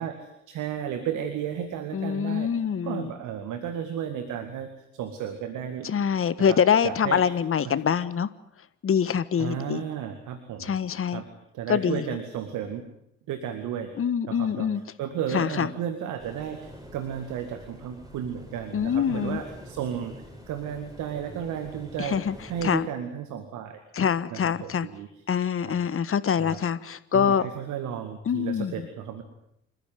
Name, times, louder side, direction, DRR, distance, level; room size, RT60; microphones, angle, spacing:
voice 1, 0.0-2.5 2.8-6.1 6.5-7.2 7.6-7.7 9.4-10.7 11.1-11.3 11.5-12.9 13.3-13.9 14.3-14.7 15.0-22.2 22.5-23.8 24.3-25.3 25.6-25.8 26.4-26.6 27.1-29.2, right 9 dB, 65° right, 8 dB, 2.0 m, -33 dB
voice 2, 1.9-3.1 5.8-8.3 8.8-9.8 10.6-11.2 11.7-12.0 14.0-14.8 15.3-15.7 18.7-19.4 22.0-22.3 22.6-22.9 23.9-24.9 25.3-27.5 28.3-28.7, left 7 dB, 45° left, 15 dB, 1.4 m, -25 dB
sound 1, 16.2-22.8, equal, 10° right, 6.7 m, -46 dB
27.5 x 15.0 x 9.3 m, 0.78 s
figure-of-eight pair, 40°, 32 cm